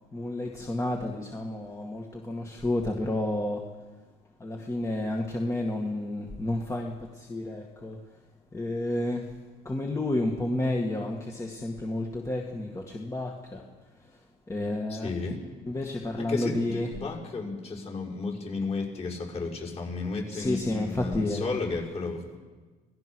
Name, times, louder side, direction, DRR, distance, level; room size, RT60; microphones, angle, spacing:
voice 1, 0.1-3.7 4.4-8.2 8.5-9.4 9.6-15.1 15.6-16.9 20.3-21.6, left 1 dB, 15° left, 1 dB, 2.1 m, -31 dB
voice 2, 14.9-15.4 16.3-22.4, left 3 dB, 40° left, -1 dB, 6.2 m, -33 dB
27.0 x 18.0 x 6.3 m, 1.3 s
cardioid pair, 110°, 17 cm